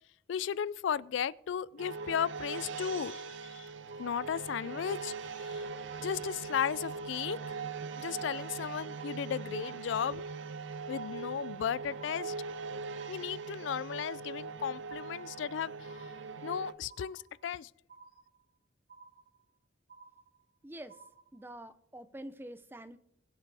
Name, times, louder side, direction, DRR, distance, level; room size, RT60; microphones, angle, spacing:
voice 1, 0.3-3.7 4.0-5.7 6.0-7.4 8.0-10.2 10.9-12.3 13.1-15.7 16.4-17.7, left 8 dB, 75° left, 0.3 m, -35 dB
sound 1, 1.8-16.7, right 4 dB, 80° right, 0.7 m, -41 dB
sound 2, 1.9-2.6 2.9-3.6 3.9-4.6 4.9-5.6 5.9-6.6 6.9-7.6 7.9-8.6 8.9-9.6 9.9-10.6 10.9-11.6 11.9-12.6 12.9-13.6 13.9-14.6 14.9-15.6 15.9-16.6 16.9-17.6 17.9-18.6 18.9-19.6 19.9-20.6 20.9-21.6, right 4 dB, 55° right, 3.1 m, -56 dB
voice 2, 20.6-20.9 21.3-23.0, right 1 dB, 10° right, 0.5 m, -46 dB
21.5 x 7.4 x 3.4 m
head